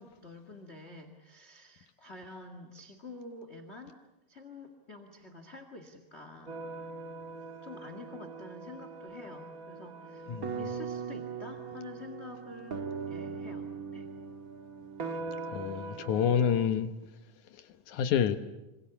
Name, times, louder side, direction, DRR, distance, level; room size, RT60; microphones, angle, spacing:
voice 1, 0.0-4.0 4.3-6.6 7.6-14.1, left 3 dB, 25° left, 1.6 m, -48 dB
sound 1, 6.5-16.7, right 5 dB, 40° right, 1.3 m, -40 dB
voice 2, 10.3-10.6 15.5-16.9 17.9-18.4, left 8 dB, 70° left, 2.3 m, -28 dB
26.5 x 26.0 x 7.1 m
omnidirectional pair, 4.0 m